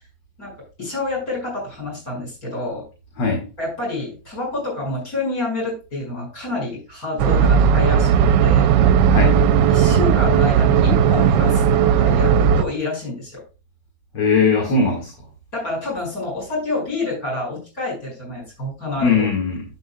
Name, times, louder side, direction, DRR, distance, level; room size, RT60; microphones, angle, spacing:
voice 1, 0.8-2.8 3.6-8.1 8.4-8.7 9.7-13.4 15.5-19.3, left 2 dB, 50° left, -1 dB, 6.4 m, -28 dB
sound 1, 7.2-12.6, right 7 dB, 75° right, 1.2 m, -16 dB
voice 2, 14.1-15.1 19.0-19.6, left 4 dB, 70° left, 1 dB, 2.6 m, -19 dB
11.0 x 8.9 x 2.3 m, 0.31 s
omnidirectional pair, 2.0 m